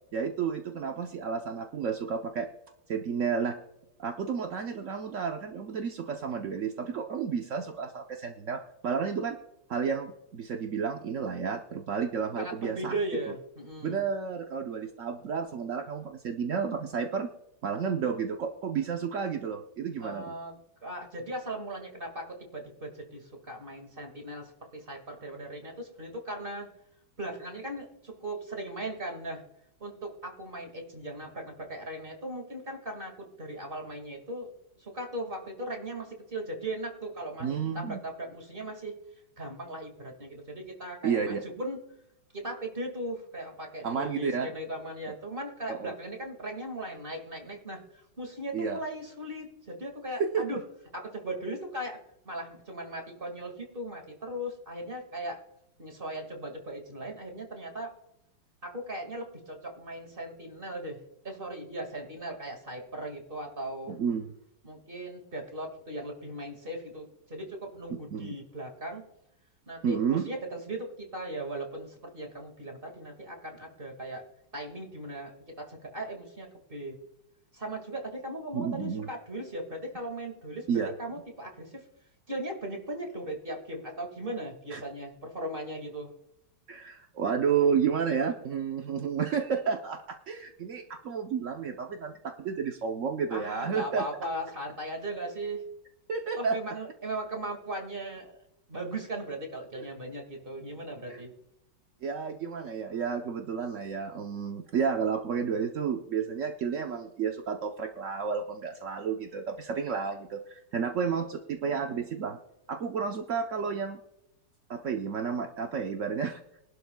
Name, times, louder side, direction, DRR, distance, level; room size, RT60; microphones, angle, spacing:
voice 1, 0.1-2.5 2.9-3.6 4.0-9.4 9.7-12.9 13.8-17.3 17.6-20.3 37.4-38.0 41.0-41.4 43.8-44.5 45.7-45.9 48.5-48.8 50.2-50.6 63.9-64.3 68.1-68.4 69.8-70.3 78.5-79.1 80.7-80.9 84.7-84.8 86.7-94.0 96.1-96.6 99.8-99.9 101.1-101.2 102.0-112.4 112.7-114.0 114.7-116.4, right 6 dB, 55° right, 3 dB, 0.9 m, -31 dB
voice 2, 12.4-14.0 20.0-26.7 27.2-29.4 29.8-34.5 34.8-39.0 39.4-41.8 42.3-50.6 50.9-52.0 52.3-55.4 55.8-57.9 58.6-63.9 64.6-69.0 69.7-74.2 74.5-77.0 77.5-81.8 82.3-86.1 93.3-95.6 96.4-98.4 98.7-101.3, right 1 dB, 25° right, 3 dB, 2.1 m, -38 dB
23.0 x 12.0 x 2.3 m, 0.85 s
omnidirectional pair, 2.3 m